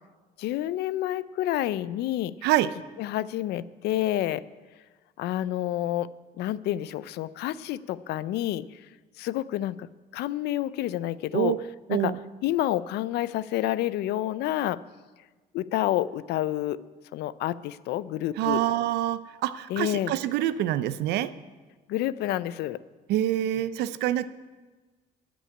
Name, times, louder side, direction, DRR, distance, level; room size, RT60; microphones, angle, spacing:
voice 1, 0.4-2.3 3.0-4.4 5.2-6.1 6.4-8.7 9.2-9.9 10.1-11.5 11.9-12.1 12.4-14.8 15.5-16.8 17.1-18.6 19.7-20.1 21.9-22.8, left 13 dB, 75° left, 17 dB, 0.5 m, -28 dB
voice 2, 2.4-2.7 11.3-11.6 11.9-12.2 18.4-21.3 23.1-24.3, right 13 dB, 80° right, 15 dB, 0.6 m, -26 dB
13.0 x 6.2 x 9.7 m, 1.3 s
cardioid pair, 110°, 17 cm